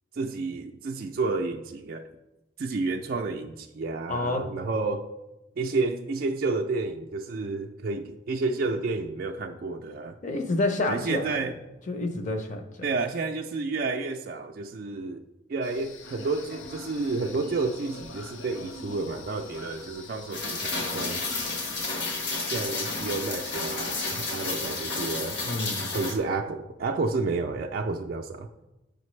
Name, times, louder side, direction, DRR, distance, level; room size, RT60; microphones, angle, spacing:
voice 1, 0.1-2.1 2.6-5.1 5.6-10.2 10.9-11.5 12.8-15.2 15.5-21.2 22.5-25.4 25.9-28.5, right 3 dB, 45° right, 3 dB, 0.3 m, -30 dB
voice 2, 4.1-4.5 10.2-11.5 11.9-12.6 25.5-25.8, left 2 dB, 40° left, 5 dB, 0.7 m, -28 dB
sound 1, 15.6-24.7, left 3 dB, 75° left, 0.6 m, -44 dB
Rain, 20.3-26.2, left 3 dB, 60° left, 1.1 m, -31 dB
8.7 x 5.0 x 3.2 m, 1.0 s
head